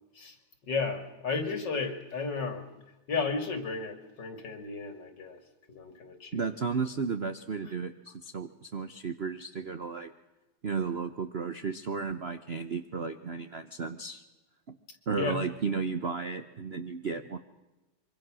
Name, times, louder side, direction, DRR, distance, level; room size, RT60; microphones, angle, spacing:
voice 1, 0.6-2.6 3.1-5.4 5.7-6.4 15.2-15.4, left 4 dB, 55° left, 7 dB, 3.1 m, -33 dB
voice 2, 6.3-10.1 10.6-14.2 15.1-17.4, right 5 dB, 45° right, 8 dB, 0.8 m, -34 dB
25.0 x 24.0 x 6.3 m, 1.1 s
omnidirectional pair, 2.3 m